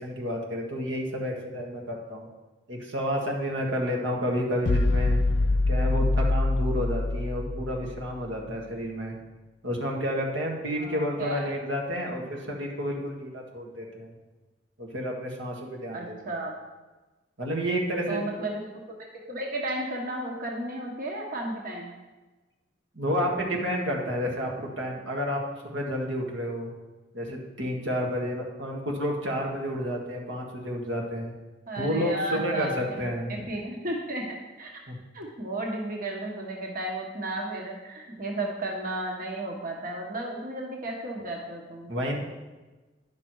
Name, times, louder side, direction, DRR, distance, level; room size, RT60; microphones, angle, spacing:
voice 1, 0.0-2.3 2.7-5.2 5.7-9.1 9.6-14.1 14.8-16.2 17.4-18.2 22.9-26.7 27.1-31.3 31.8-33.4 34.9-35.0 41.9-42.2, equal, 90° right, -1 dB, 1.7 m, -30 dB
sound 1, 4.7-8.1, left 2 dB, 65° left, 0.5 m, -25 dB
voice 2, 10.8-11.4 15.9-16.5 18.1-18.8 19.3-21.9 31.7-33.0 33.3-34.3 34.6-34.7 35.1-41.9, right 1 dB, 50° right, 0 dB, 1.2 m, -33 dB
10.5 x 5.9 x 4.6 m, 1.2 s
head